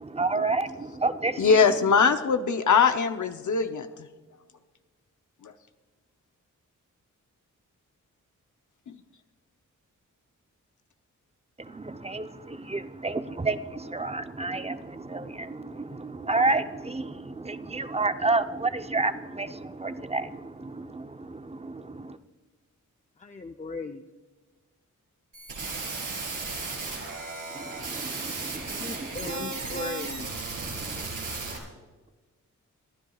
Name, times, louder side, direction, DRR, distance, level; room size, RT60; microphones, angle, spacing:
voice 1, 0.0-1.6 11.6-22.2 27.5-29.5, right 3 dB, 20° right, 0.7 m, -30 dB
voice 2, 1.4-3.9 5.4-5.5, left 5 dB, 70° left, 0.8 m, -21 dB
voice 3, 23.2-24.0 28.7-30.3, left 3 dB, 25° left, 0.6 m, -37 dB
sound 1, 25.3-31.6, right 3 dB, 85° right, 4.0 m, -35 dB
23.0 x 11.5 x 2.4 m
cardioid pair, 75°, 31 cm